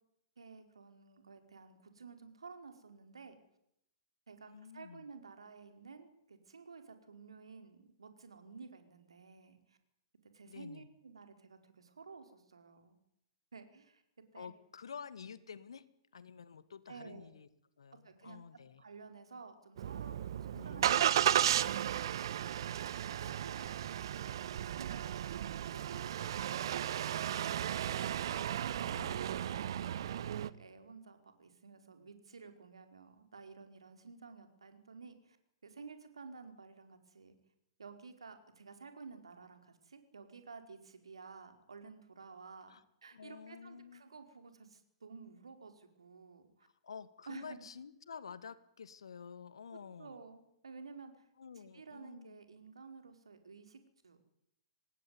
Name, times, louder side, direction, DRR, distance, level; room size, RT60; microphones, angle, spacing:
voice 1, 0.4-3.4 4.3-9.8 10.3-13.0 13.5-14.0 14.3-14.5 16.9-17.3 18.0-18.4 18.8-21.8 22.4-22.7 23.0-25.3 28.7-29.2 29.8-35.4 35.6-37.3 37.8-46.7 47.3-47.7 50.0-51.3 51.6-54.3, right 4 dB, 75° right, 8 dB, 4.7 m, -53 dB
voice 2, 4.4-5.1 10.5-10.9 14.3-15.9 16.1-17.5 17.8-18.8 20.5-21.1 28.9-29.3 42.7-42.8 43.1-44.1 46.6-50.2 51.4-52.4, left 6 dB, 70° left, 15 dB, 2.0 m, -50 dB
Engine starting, 19.8-30.5, right 10 dB, 55° right, 1.1 m, -34 dB
25.0 x 19.5 x 9.8 m, 0.77 s
figure-of-eight pair, 110°, 3 cm